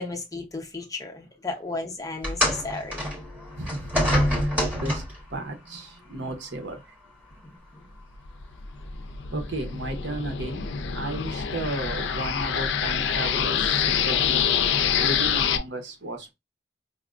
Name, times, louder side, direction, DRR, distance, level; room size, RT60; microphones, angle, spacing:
voice 1, 0.0-3.0, left 3 dB, 20° left, 0.7 m, -34 dB
sound 1, 2.2-5.3 6.3-6.4 7.3-7.4, equal, 10° right, 1.1 m, -26 dB
voice 2, 3.6-3.9 4.4-5.0 5.3-6.8 9.3-10.7 10.9-14.5 15.0-16.3, right 2 dB, 80° right, 0.9 m, -34 dB
sound 2, 8.3-15.6, left 8 dB, 80° left, 0.4 m, -26 dB
5.0 x 2.1 x 2.4 m
head